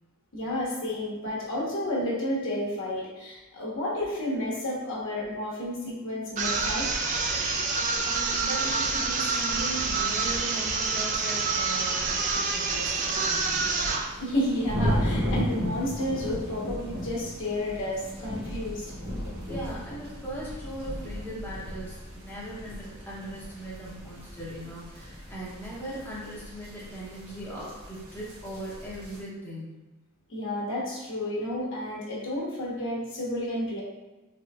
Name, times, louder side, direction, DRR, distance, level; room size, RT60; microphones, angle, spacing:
voice 1, 0.3-6.9 14.2-18.9 27.6-27.7 30.3-33.8, left 1 dB, 60° left, -4 dB, 1.0 m, -31 dB
sound 1, 6.4-14.1, right 4 dB, 35° right, 0.3 m, -27 dB
voice 2, 8.0-13.7 19.5-29.8, right 1 dB, 10° left, -8 dB, 0.7 m, -39 dB
sound 2, 12.1-29.2, equal, 75° right, 1.1 m, -35 dB
3.8 x 3.1 x 2.3 m, 1.1 s
head